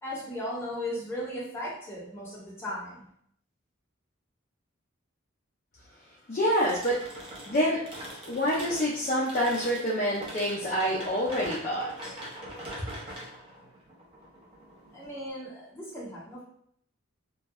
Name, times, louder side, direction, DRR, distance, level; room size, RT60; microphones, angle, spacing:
voice 1, 0.0-3.0 14.9-16.4, left 1 dB, 10° left, -8 dB, 0.8 m, -36 dB
voice 2, 6.3-7.1 7.5-7.8 8.3-12.2, equal, 35° left, -6 dB, 0.4 m, -27 dB
sound 1, 6.6-15.3, equal, 25° right, 0.5 m, -43 dB
2.6 x 2.1 x 2.2 m, 0.67 s
head